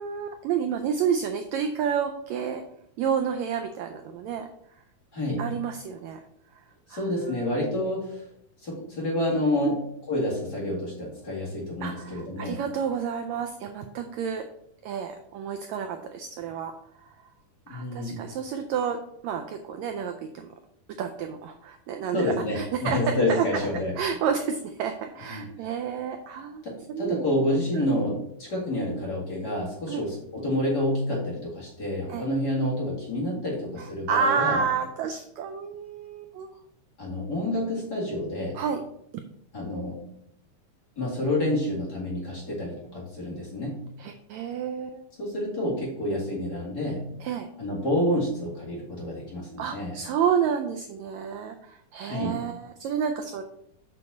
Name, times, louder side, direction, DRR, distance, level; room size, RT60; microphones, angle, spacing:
voice 1, 0.0-2.6 3.0-4.5 5.4-6.2 6.9-7.6 9.6-9.8 11.8-14.5 14.8-16.7 17.0-17.1 17.7-20.5 21.0-23.0 23.3-23.6 24.0-26.6 26.9-27.2 27.8-27.9 29.9-30.1 32.1-32.2 33.8-36.5 38.5-38.8 39.1-39.2 44.0-45.0 47.2-47.5 49.6-53.4, right 7 dB, 85° right, 5 dB, 1.6 m, -30 dB
voice 2, 5.1-5.5 6.9-8.2 8.6-9.8 10.1-12.6 17.7-18.3 22.1-24.0 25.3-25.5 26.6-34.6 37.0-38.6 39.5-40.0 41.0-43.8 45.2-47.1 47.6-50.0 52.0-52.4, left 1 dB, 35° left, -5 dB, 2.1 m, -28 dB
6.8 x 6.5 x 4.1 m, 0.74 s
omnidirectional pair, 3.8 m